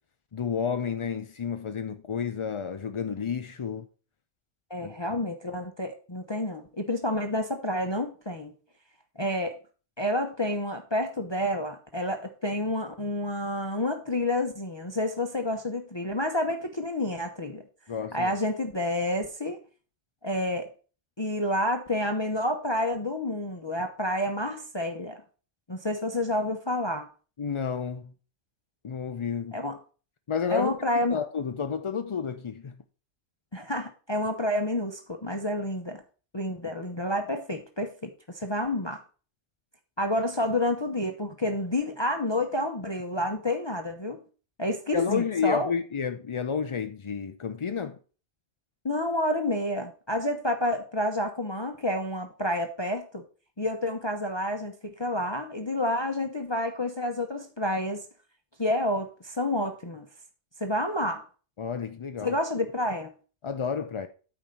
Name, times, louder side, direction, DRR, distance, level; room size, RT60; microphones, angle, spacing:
voice 1, 0.3-3.9 4.8-5.1 17.9-18.3 27.4-28.1 28.8-29.6 30.3-30.8 31.1-32.7 44.9-48.0 61.6-62.4 63.4-64.1, left 6 dB, 55° left, 0.3 m, -30 dB
voice 2, 4.7-8.5 9.2-9.6 10.0-17.6 18.1-19.6 20.2-20.7 21.2-25.2 25.7-27.1 29.5-29.8 30.5-31.2 33.5-36.0 36.3-39.0 40.0-44.2 44.6-45.7 48.8-53.2 53.6-58.0 58.6-60.1 60.6-61.3 62.2-63.1, left 1 dB, 25° left, 0.7 m, -29 dB
9.0 x 4.6 x 5.3 m
omnidirectional pair, 1.3 m